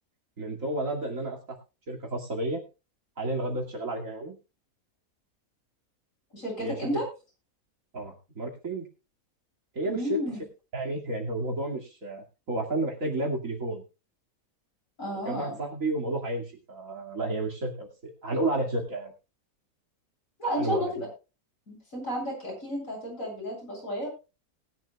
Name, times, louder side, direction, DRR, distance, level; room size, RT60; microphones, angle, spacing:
voice 1, 0.4-1.4 1.9-2.6 3.2-4.4 6.6-6.8 7.9-8.9 9.7-10.2 10.7-13.8 15.2-19.1 20.6-20.9, right 2 dB, 65° right, 1 dB, 2.8 m, -31 dB
voice 2, 6.3-7.0 9.8-10.4 15.0-15.5 20.4-21.1 21.7-24.1, equal, 65° left, -2 dB, 7.7 m, -32 dB
19.5 x 10.5 x 2.3 m, 0.29 s
omnidirectional pair, 1.5 m